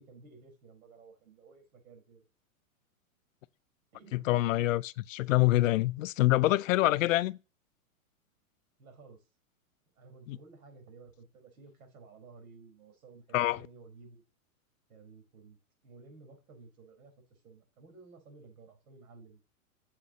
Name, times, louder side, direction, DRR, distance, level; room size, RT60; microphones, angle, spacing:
voice 1, 0.0-2.3 3.9-4.7 8.8-9.3 10.0-14.2 14.9-15.6 15.8-19.4, right 4 dB, 80° right, 4.4 m, -54 dB
voice 2, 4.1-7.4 10.3-10.4 13.3-13.6, left 17 dB, 65° left, 0.5 m, -26 dB
8.3 x 7.6 x 2.8 m
hypercardioid pair, 150°, 43 cm